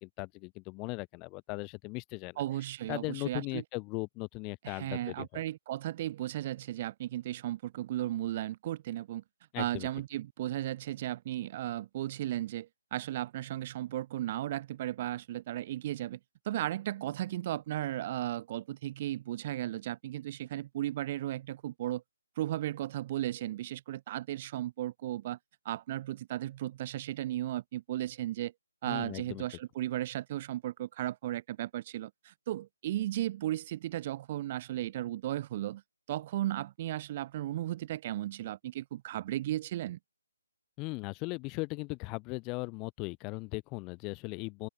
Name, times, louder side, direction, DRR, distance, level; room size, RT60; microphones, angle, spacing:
voice 1, 0.0-2.4 2.9-5.4 9.5-9.9 28.9-29.4 40.8-44.7, left 27 dB, 20° left, 0.8 m, -38 dB
voice 2, 2.4-3.6 4.6-9.2 9.6-16.2 16.4-22.0 22.4-25.4 25.6-28.5 28.8-35.8 36.1-40.0, right 13 dB, 35° right, 0.4 m, -35 dB
open air
figure-of-eight pair, 145°, 0 cm